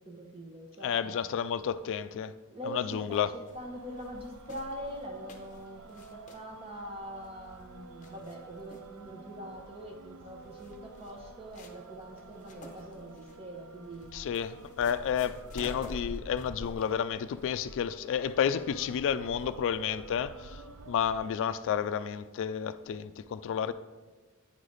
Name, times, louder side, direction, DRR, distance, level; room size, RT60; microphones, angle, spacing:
voice 1, 0.0-1.2 2.5-14.1, equal, 25° right, 0.7 m, -43 dB
voice 2, 0.8-2.3 2.7-3.3 14.1-20.6 20.9-23.7, left 8 dB, 60° left, 0.3 m, -31 dB
sound 1, 2.9-19.7, left 1 dB, 35° left, 0.7 m, -48 dB
sound 2, 3.6-21.3, right 4 dB, 75° right, 0.5 m, -51 dB
9.4 x 3.2 x 3.9 m
head